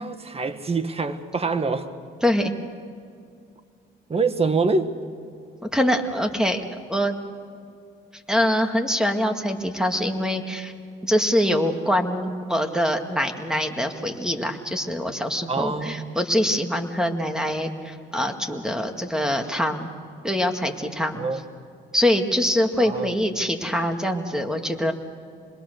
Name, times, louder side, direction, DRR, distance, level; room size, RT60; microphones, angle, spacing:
voice 1, 0.0-1.9 4.1-4.9 15.5-16.2 21.1-21.4 22.8-23.1, right 4 dB, 30° right, 10 dB, 1.6 m, -25 dB
voice 2, 2.2-2.5 5.6-6.6 6.9-7.2 8.3-10.7 11.0-19.9 20.2-21.2 21.9-24.9, equal, 5° right, 5 dB, 2.1 m, -24 dB
26.5 x 21.5 x 6.6 m, 2.3 s
cardioid pair, 90°, 20 cm